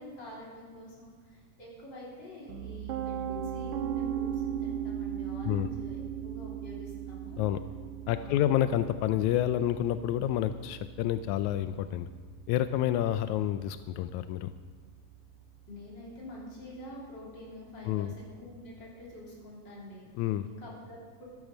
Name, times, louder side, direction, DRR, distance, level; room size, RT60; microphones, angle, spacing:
voice 1, 0.0-7.4 8.1-8.5 15.7-21.2, left 1 dB, 30° left, -5 dB, 4.0 m, -47 dB
Piano, 2.5-14.4, right 9 dB, 70° right, 2.4 m, -38 dB
voice 2, 8.1-12.1 12.5-14.5 17.8-18.1 20.2-20.5, left 12 dB, 85° left, 11 dB, 1.7 m, -29 dB
13.5 x 13.0 x 5.1 m, 1.5 s
omnidirectional pair, 3.8 m